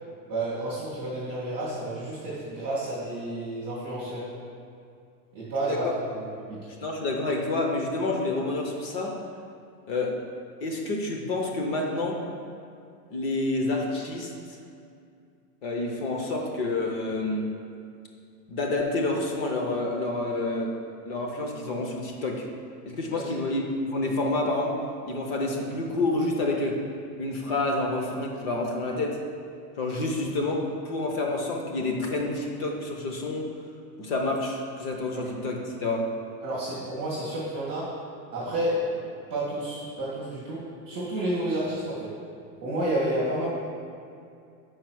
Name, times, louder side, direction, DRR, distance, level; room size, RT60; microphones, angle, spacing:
voice 1, 0.3-4.2 5.3-5.9 6.1-6.7 23.1-23.2 35.1-35.3 36.4-37.9 38.3-39.0 39.3-42.1 42.6-43.5, right 1 dB, 15° right, -14 dB, 0.4 m, -30 dB
voice 2, 6.8-9.2 9.9-10.2 10.6-12.2 13.1-14.3 15.6-17.5 18.5-20.7 21.0-22.5 22.9-23.6 23.9-24.8 25.1-26.8 27.2-29.2 29.8-33.5 34.0-36.1, left 2 dB, 35° left, 1 dB, 0.7 m, -28 dB
4.8 x 4.7 x 6.2 m, 2.4 s
supercardioid pair, 175°, 49 cm